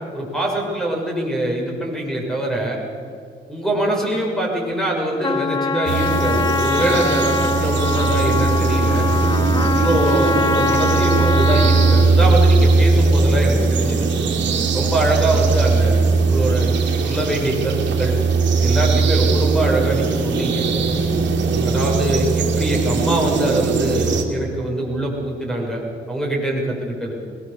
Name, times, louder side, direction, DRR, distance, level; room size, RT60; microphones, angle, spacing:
voice 1, 0.1-2.8 3.5-9.0 9.7-14.1 14.7-16.7 17.0-18.2 18.6-20.6 21.6-25.8 26.1-27.1, right 1 dB, ahead, -1 dB, 6.6 m, -23 dB
Trumpet, 5.2-12.2, left 4 dB, 20° left, 0.8 m, -23 dB
sound 1, 5.9-24.2, right 4 dB, 65° right, 3.0 m, -19 dB
21.5 x 20.5 x 6.9 m, 2.3 s
cardioid pair, 90°, 20 cm